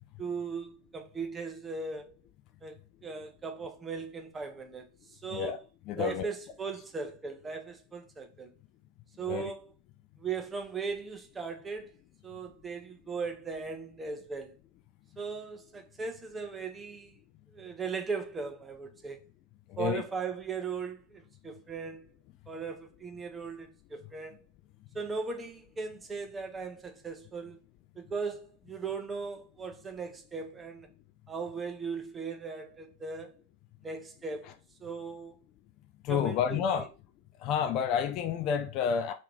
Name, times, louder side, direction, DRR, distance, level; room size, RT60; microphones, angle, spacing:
voice 1, 0.2-2.2 2.6-5.6 6.0-8.5 9.2-9.7 10.2-11.9 12.2-14.6 15.2-17.2 17.5-19.2 19.8-22.0 22.5-24.5 24.9-27.6 28.0-30.9 31.3-33.3 33.8-34.5 34.8-35.4 36.1-36.8, right 5 dB, 15° right, 0.5 m, -38 dB
voice 2, 5.9-6.3 9.2-9.5 19.7-20.0 36.0-36.9 37.4-39.1, left 8 dB, 40° left, 0.3 m, -29 dB
2.7 x 2.6 x 3.6 m
figure-of-eight pair, 90°, 0 cm